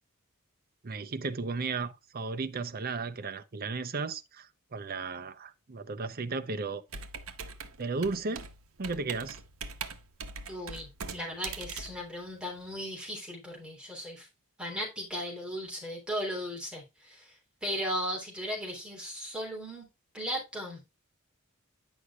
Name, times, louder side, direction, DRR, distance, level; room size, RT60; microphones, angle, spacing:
voice 1, 0.8-6.8 7.8-8.5 8.8-9.4, right 4 dB, 45° right, 0.6 m, -34 dB
Computer keyboard, 6.9-12.8, right 5 dB, 70° right, 1.0 m, -42 dB
voice 2, 10.5-14.3 14.6-19.9 20.1-20.8, equal, 5° right, 3.3 m, -37 dB
9.7 x 6.4 x 2.4 m
head